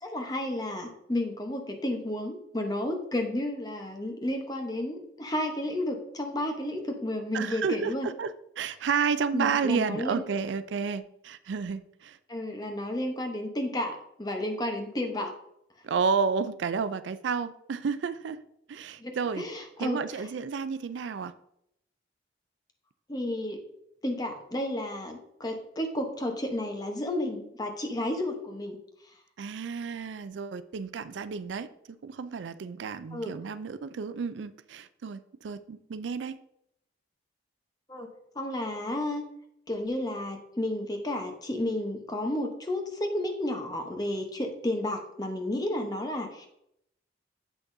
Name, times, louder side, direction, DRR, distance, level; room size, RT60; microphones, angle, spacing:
voice 1, 0.0-8.1 9.3-10.2 12.3-15.3 19.0-20.0 23.1-23.6 24.0-28.8 33.1-33.3 37.9-38.1 38.3-39.2 39.7-46.5, left 1 dB, 20° left, 4 dB, 0.9 m, -32 dB
voice 2, 7.3-12.2 15.8-18.4 18.7-19.4 19.8-21.3 29.4-36.4, right 5 dB, 80° right, 13 dB, 0.4 m, -31 dB
8.1 x 5.9 x 2.6 m, 0.76 s
head